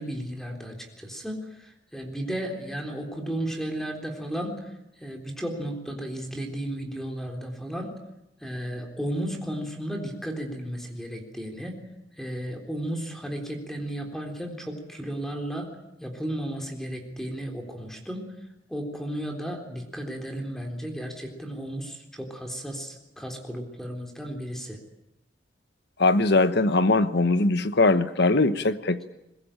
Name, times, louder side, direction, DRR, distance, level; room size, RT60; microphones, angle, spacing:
voice 1, 0.0-4.7 5.0-7.9 8.4-11.8 12.2-15.7 16.0-18.3 18.7-24.8, right 1 dB, ahead, 2 dB, 3.7 m, -34 dB
voice 2, 26.0-29.0, left 2 dB, 60° left, 12 dB, 1.1 m, -21 dB
21.5 x 21.5 x 8.9 m, 0.89 s
head